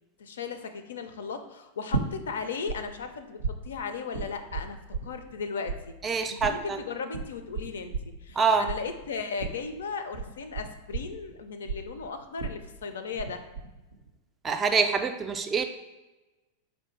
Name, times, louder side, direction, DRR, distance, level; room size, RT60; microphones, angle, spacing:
voice 1, 0.2-4.8 5.0-7.9 8.2-13.4, left 5 dB, 65° left, 8 dB, 0.4 m, -36 dB
sound 1, 1.9-2.8 3.0-5.4 5.7-13.3 13.6-14.1, right 4 dB, 70° right, 0.6 m, -34 dB
voice 2, 6.0-6.8 8.4-8.7 14.4-15.7, right 5 dB, 20° right, 7 dB, 0.3 m, -25 dB
4.4 x 2.6 x 4.4 m, 1.1 s
figure-of-eight pair, 90°, 0 cm